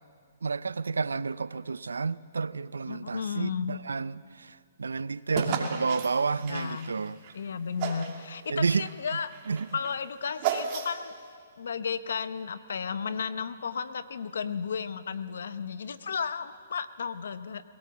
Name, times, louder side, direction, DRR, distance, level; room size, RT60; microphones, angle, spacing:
voice 1, 0.4-7.2 8.5-8.9 9.5-9.7, right 4 dB, 90° right, 0.5 m, -30 dB
voice 2, 2.9-3.8 6.5-6.9 7.3-9.3 9.7-11.1 11.6-17.6, left 6 dB, 75° left, 1.0 m, -33 dB
sound 1, 5.3-7.4 7.8-8.2 8.6-11.2, right 7 dB, 40° right, 2.6 m, -33 dB
21.5 x 17.5 x 7.2 m
hypercardioid pair, 140°, 0 cm